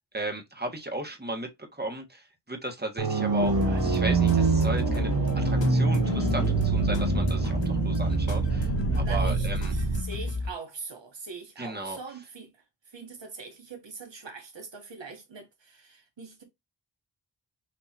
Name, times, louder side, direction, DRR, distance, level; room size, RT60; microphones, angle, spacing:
voice 1, 0.1-9.7 11.6-12.0, right 1 dB, 25° right, 1.4 m, -35 dB
sound 1, 3.0-10.0, right 4 dB, 55° right, 0.9 m, -25 dB
sound 2, 3.4-10.5, left 3 dB, 85° left, 0.8 m, -32 dB
sound 3, 3.4-9.1, left 4 dB, 35° left, 0.6 m, -36 dB
voice 2, 9.0-12.5 12.9-16.4, right 4 dB, 85° right, 1.2 m, -42 dB
6.1 x 2.9 x 2.8 m
wide cardioid pair, 60°, 43 cm